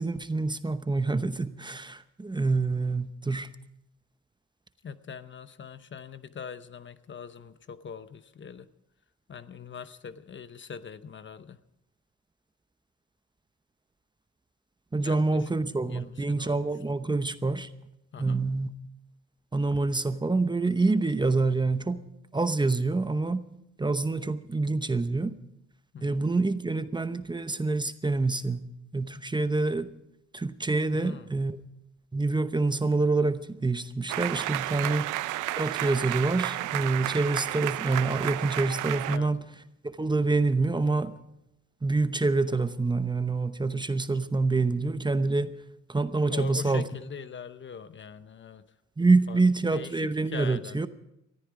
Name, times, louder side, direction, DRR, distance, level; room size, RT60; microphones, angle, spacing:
voice 1, 0.0-3.5 14.9-17.7 18.2-18.7 19.5-22.0 22.3-23.4 23.8-25.4 26.0-28.7 28.9-29.9 30.3-31.6 32.1-35.1 35.6-39.4 39.8-41.2 41.8-45.5 45.9-46.9 49.0-50.9, right 3 dB, 15° right, 11 dB, 0.8 m, -26 dB
voice 2, 4.8-8.7 9.3-11.6 15.0-16.7 18.1-18.4 25.9-26.2 30.9-31.3 34.7-35.0 39.1-39.3 46.3-48.6 49.3-49.4 49.7-50.8, left 6 dB, 40° left, 13 dB, 0.8 m, -42 dB
sound 1, 34.1-39.2, right 16 dB, 90° right, 0.6 m, -32 dB
19.5 x 14.0 x 4.9 m, 0.83 s
cardioid pair, 90°, 30 cm